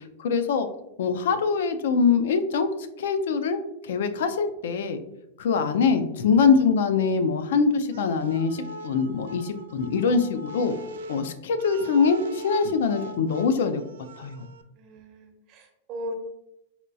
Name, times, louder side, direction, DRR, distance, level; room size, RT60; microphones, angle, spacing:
voice 1, 0.2-0.7 1.0-2.7 3.0-5.0 5.4-10.8 11.1-13.8 14.2-14.5, left 5 dB, 75° left, 9 dB, 0.4 m, -23 dB
sound 1, 7.9-14.6, right 2 dB, 90° right, 0.3 m, -42 dB
voice 2, 14.8-16.1, equal, 35° right, 4 dB, 0.6 m, -38 dB
4.2 x 2.3 x 2.6 m, 0.86 s
supercardioid pair, 160°, 0 cm